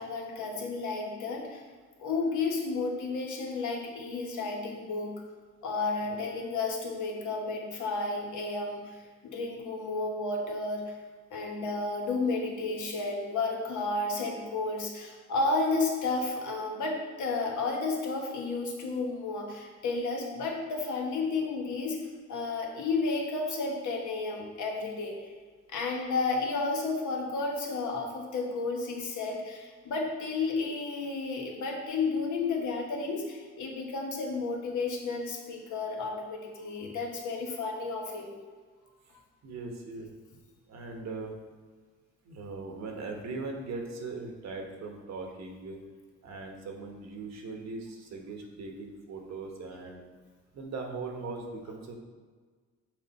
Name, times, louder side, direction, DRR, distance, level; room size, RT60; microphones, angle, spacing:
voice 1, 0.0-1.6 2.0-5.2 5.6-10.9 11.3-22.0 22.3-25.3 25.7-38.3, left 3 dB, 75° left, 0 dB, 1.3 m, -32 dB
voice 2, 39.4-40.1 40.7-41.3 42.2-45.8 46.2-50.0 50.5-52.0, right 3 dB, 60° right, 2 dB, 1.1 m, -39 dB
6.5 x 4.1 x 4.1 m, 1.5 s
cardioid pair, 90°, 30 cm